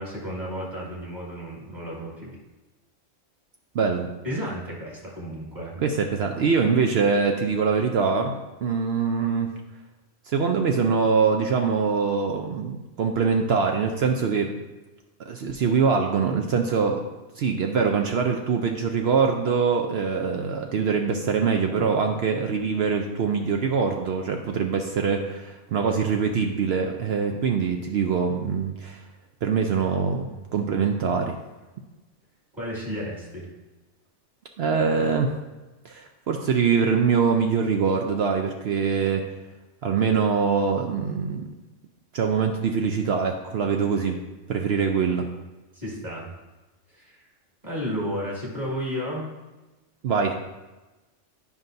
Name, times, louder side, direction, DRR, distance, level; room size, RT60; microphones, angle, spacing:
voice 1, 0.0-2.4 4.2-5.8 32.6-33.5 45.7-46.3 46.9-47.2 47.6-49.3, equal, 35° right, -5 dB, 2.1 m, -32 dB
voice 2, 3.7-4.1 5.8-9.5 10.3-14.5 15.3-17.0 17.4-29.0 29.4-31.4 34.6-35.3 35.8-39.2 39.8-41.5 42.1-44.2 44.5-45.3 50.0-50.3, right 5 dB, 65° right, 3 dB, 0.7 m, -23 dB
9.7 x 5.4 x 2.6 m, 1.1 s
omnidirectional pair, 1.3 m